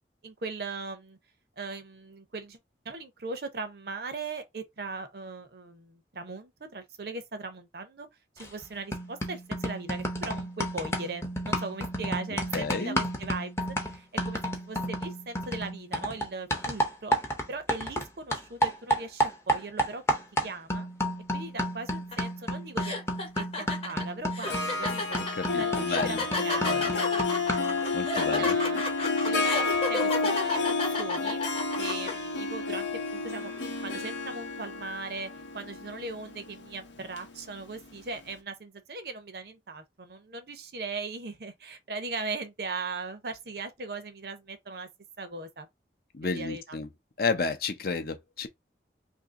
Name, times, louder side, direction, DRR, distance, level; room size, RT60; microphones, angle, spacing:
voice 1, 0.2-1.2 1.6-2.6 2.8-8.1 8.4-13.5 13.9-17.2 17.5-20.0 20.4-20.9 21.3-25.2 25.6-27.3 28.2-28.8 29.2-31.4 31.8-33.5 33.8-44.9 45.2-45.7 46.2-46.8, right 3 dB, 55° right, 0.6 m, -39 dB
sound 1, 8.4-8.6 8.9-18.1 18.3-27.8, equal, 15° left, 0.6 m, -31 dB
voice 2, 12.5-13.0 25.4-26.2 26.6-26.9 27.9-28.6 46.1-46.9 47.2-48.5, left 4 dB, 50° left, 0.6 m, -31 dB
sound 2, 22.1-22.3 22.8-32.1, left 2 dB, 30° left, 1.0 m, -32 dB
Harp, 24.4-38.0, left 4 dB, 85° left, 0.8 m, -30 dB
2.8 x 2.7 x 3.6 m
head